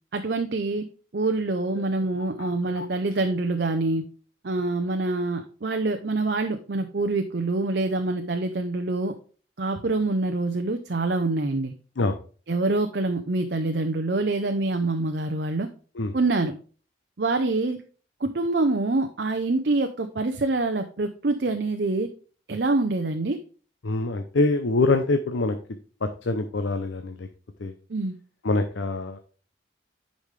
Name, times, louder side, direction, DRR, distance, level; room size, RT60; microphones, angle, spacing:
voice 1, 0.1-0.8 1.1-4.0 4.4-9.1 9.6-11.7 12.5-15.7 16.1-16.5 17.2-17.8 18.2-22.1 22.5-23.4 27.9-28.1, right 2 dB, 60° right, 6 dB, 0.6 m, -25 dB
voice 2, 2.2-2.9 12.0-12.2 15.9-16.2 23.8-25.6 26.0-27.3 27.6-27.7 28.4-29.2, left 3 dB, 75° left, 7 dB, 0.6 m, -25 dB
10.0 x 5.2 x 3.3 m, 0.39 s
head